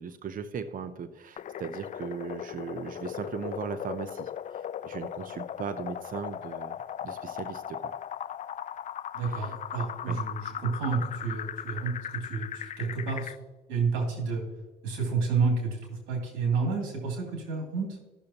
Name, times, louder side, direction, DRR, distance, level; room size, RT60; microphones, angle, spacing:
voice 1, 0.0-7.9 9.2-9.5 10.1-10.2, right 6 dB, 50° right, 11 dB, 0.7 m, -38 dB
sound 1, 1.4-13.4, left 9 dB, 45° left, 0.4 m, -38 dB
voice 2, 9.1-13.3 13.7-14.4 14.8-18.0, right 4 dB, 85° right, 0 dB, 2.8 m, -30 dB
14.0 x 6.4 x 2.9 m, 1.1 s
supercardioid pair, 70°, 18 cm